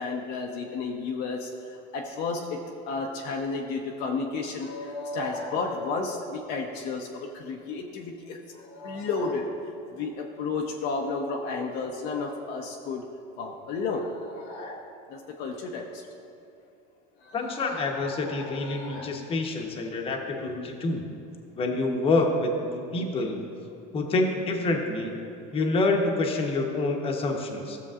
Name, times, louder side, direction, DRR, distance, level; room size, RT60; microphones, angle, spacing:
voice 1, 0.0-1.5 1.9-9.5 9.9-13.1 13.4-14.8 15.1-16.0 17.2-19.2 20.4-20.7, left 4 dB, 50° left, 0 dB, 0.8 m, -32 dB
voice 2, 17.3-21.0 21.5-23.4 23.9-25.1 25.5-27.8, left 2 dB, 25° left, 2 dB, 1.0 m, -27 dB
15.5 x 6.9 x 2.5 m, 2.6 s
supercardioid pair, 140°, 20 cm